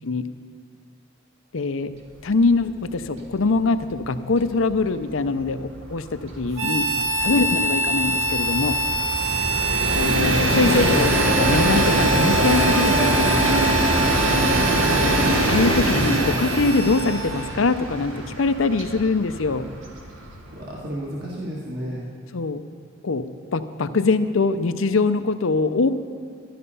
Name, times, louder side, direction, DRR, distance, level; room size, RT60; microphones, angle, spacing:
voice 1, 1.5-1.9 2.2-8.8 9.9-13.6 15.0-15.2 15.4-19.7 22.3-22.6 23.0-25.9, left 3 dB, 85° left, 10 dB, 0.7 m, -23 dB
Train, 2.4-2.6 2.9-3.0 3.3-20.7, right 1 dB, 80° right, 1.6 m, -23 dB
Harmonica, 6.5-17.6, right 2 dB, 30° right, 2.2 m, -26 dB
voice 2, 7.2-7.7 9.2-9.5 20.5-22.1, equal, 50° right, -4 dB, 1.8 m, -34 dB
13.0 x 11.0 x 5.5 m, 2.2 s
head